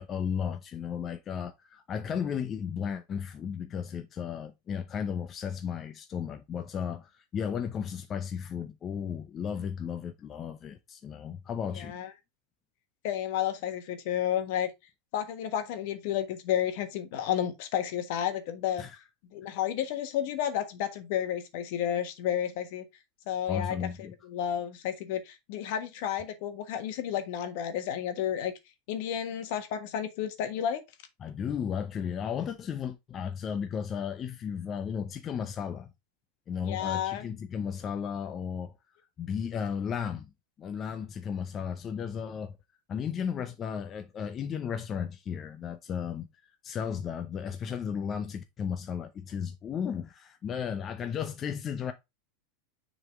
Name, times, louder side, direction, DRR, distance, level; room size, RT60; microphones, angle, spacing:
voice 1, 0.0-12.0 18.8-19.0 19.4-19.5 23.5-24.1 31.2-35.9 36.5-38.7 39.2-40.3 40.6-42.6 42.9-46.3 46.6-51.9, left 7 dB, 30° left, 0.7 m, -34 dB
voice 2, 11.8-12.1 13.0-14.7 15.1-18.8 19.3-22.8 23.3-23.9 24.2-28.5 28.9-30.8 36.6-37.3, left 10 dB, 65° left, 1.4 m, -31 dB
6.7 x 4.0 x 3.6 m
hypercardioid pair, 110°, 0 cm